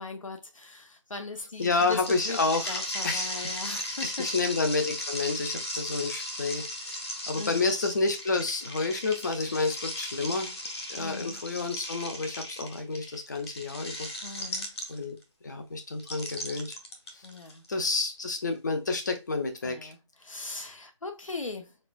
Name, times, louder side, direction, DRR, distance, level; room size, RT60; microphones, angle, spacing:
voice 1, 0.0-2.4 2.7-4.3 7.4-7.7 11.0-11.4 14.2-14.7 17.2-17.6 19.6-21.8, left 3 dB, 85° left, 1.0 m, -39 dB
sound 1, 1.6-15.2 16.0-17.9, left 1 dB, 55° left, 1.1 m, -37 dB
voice 2, 1.6-2.7 3.0-10.6 10.9-14.1 14.9-15.2 15.4-16.8 17.1-17.2 17.7-19.9, left 3 dB, 35° left, 0.6 m, -30 dB
4.2 x 2.4 x 2.5 m
figure-of-eight pair, 165°, 16 cm